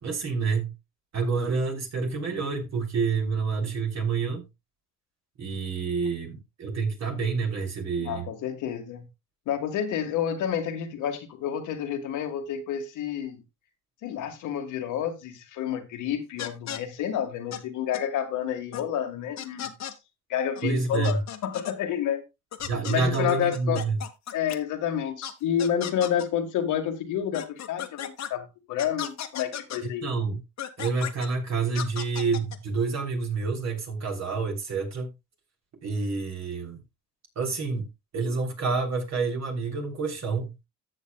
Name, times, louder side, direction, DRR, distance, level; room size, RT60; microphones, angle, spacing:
voice 1, 0.0-0.7 1.1-4.5 5.4-8.3 20.6-21.2 22.7-24.0 29.8-30.4 30.8-35.1 35.8-36.8 37.3-40.5, right 4 dB, 60° right, 3.3 m, -28 dB
voice 2, 8.0-9.1 9.5-13.4 14.0-19.7 20.3-22.2 22.9-23.8 24.3-30.0, left 9 dB, 85° left, 1.7 m, -29 dB
Groan Toy - Short, 16.4-16.8 17.5-17.6 17.9-18.0 18.7-18.8 19.4-19.9 20.6-20.7 20.9-21.7 22.5-24.6 25.2-25.3 25.6-26.3 27.3-28.3 28.8-29.8 30.6-31.3 31.7-32.6, left 9 dB, 65° left, 1.2 m, -35 dB
14.0 x 7.4 x 2.3 m
cardioid pair, 90°, 30 cm